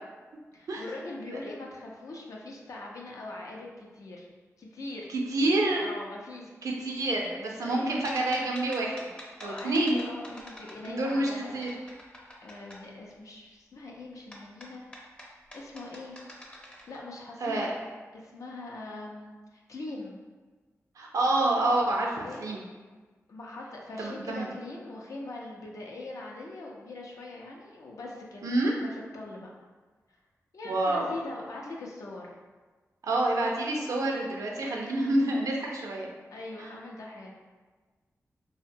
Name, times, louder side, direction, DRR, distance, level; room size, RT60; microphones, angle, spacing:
voice 1, 0.5-4.3 4.6-5.1 5.4-6.5 7.6-7.9 9.4-11.6 12.4-14.9 15.5-16.2 16.9-17.7 18.1-20.2 22.2-22.5 23.3-29.5 30.1-30.2 30.5-32.3 36.3-37.3, left 2 dB, 70° left, -2 dB, 0.5 m, -41 dB
voice 2, 5.3-5.8 6.6-9.1 9.4-10.0 10.8-11.7 17.4-17.7 21.0-22.6 24.0-24.5 28.4-28.7 30.6-31.1 33.0-36.1, right 2 dB, 80° right, -1 dB, 0.4 m, -28 dB
sound 1, 8.0-11.3 11.6-12.8 14.3-17.0, left 1 dB, 15° left, 0.5 m, -46 dB
2.7 x 2.1 x 2.6 m, 1.4 s
cardioid pair, 55°, 6 cm